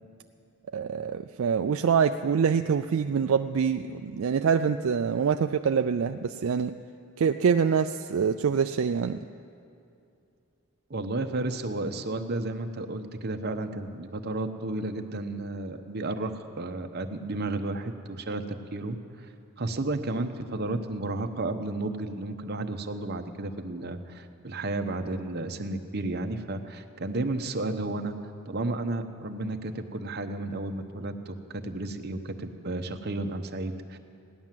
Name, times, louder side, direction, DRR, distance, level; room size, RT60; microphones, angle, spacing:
voice 1, 0.7-6.8 7.2-9.2, right 6 dB, 70° right, 7 dB, 0.4 m, -25 dB
voice 2, 10.9-19.3 19.6-28.2 28.4-34.0, right 2 dB, 50° right, 6 dB, 0.9 m, -32 dB
16.5 x 11.0 x 7.5 m, 2.6 s
head